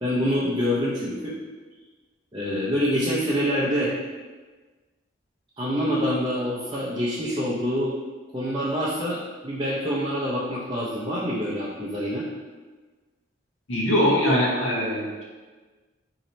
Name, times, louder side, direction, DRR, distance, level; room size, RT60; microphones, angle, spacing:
voice 1, 0.0-1.3 2.3-3.9 5.6-7.9 8.3-12.2, equal, 20° right, -9 dB, 0.5 m, -26 dB
voice 2, 13.7-15.2, equal, 80° left, -4 dB, 0.8 m, -22 dB
3.1 x 2.8 x 3.9 m, 1.3 s
head